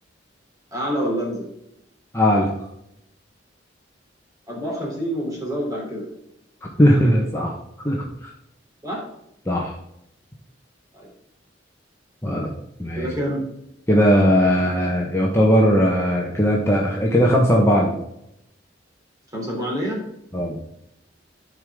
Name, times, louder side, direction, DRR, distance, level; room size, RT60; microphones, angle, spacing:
voice 1, 0.7-1.5 4.5-6.1 8.8-9.0 10.9-11.1 13.0-13.4 19.3-20.0, equal, 20° right, -2 dB, 3.1 m, -27 dB
voice 2, 2.1-2.5 6.8-7.5 7.8-8.3 9.5-9.7 12.2-12.5 12.8-13.1 13.9-17.9 20.3-20.6, equal, 15° left, -2 dB, 1.1 m, -18 dB
11.5 x 4.9 x 3.6 m, 0.81 s
head